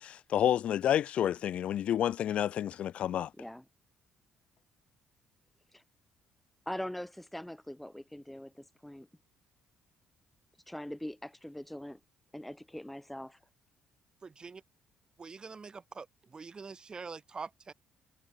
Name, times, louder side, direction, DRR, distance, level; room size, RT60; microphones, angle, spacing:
voice 1, 0.0-3.3, left 10 dB, 55° left, 0.5 m, -29 dB
voice 2, 6.7-9.1 10.7-12.0 12.3-13.4, left 1 dB, 5° left, 0.6 m, -42 dB
voice 3, 14.2-14.6 15.2-17.7, right 4 dB, 35° right, 2.5 m, -45 dB
hypercardioid pair, 45°, 2 cm